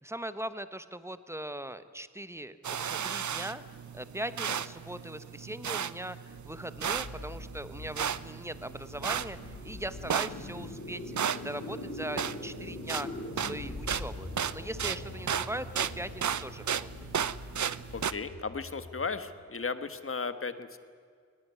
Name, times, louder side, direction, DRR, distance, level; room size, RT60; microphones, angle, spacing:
voice 1, 0.0-3.6 3.9-13.1 13.4-17.1, right 1 dB, 10° right, 13 dB, 1.1 m, -40 dB
sound 1, 2.6-18.1, right 8 dB, 80° right, 0.7 m, -35 dB
sound 2, 6.3-19.5, left 2 dB, 90° left, 6.7 m, -44 dB
voice 2, 17.9-20.8, left 4 dB, 50° left, 12 dB, 1.5 m, -36 dB
22.0 x 20.5 x 9.6 m, 2.1 s
wide cardioid pair, 120°, 29 cm